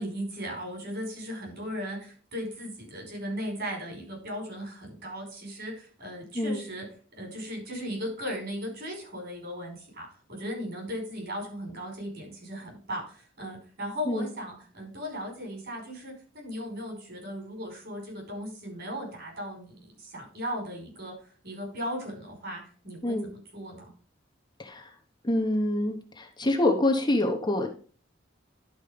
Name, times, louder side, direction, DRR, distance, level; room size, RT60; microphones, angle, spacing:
voice 1, 0.0-6.9 7.2-21.1 21.4-23.2 23.5-23.9, equal, 55° right, 0 dB, 5.2 m, -37 dB
voice 2, 24.6-24.9 25.2-27.7, left 1 dB, 25° left, 2 dB, 1.1 m, -26 dB
11.5 x 4.5 x 5.1 m, 0.41 s
head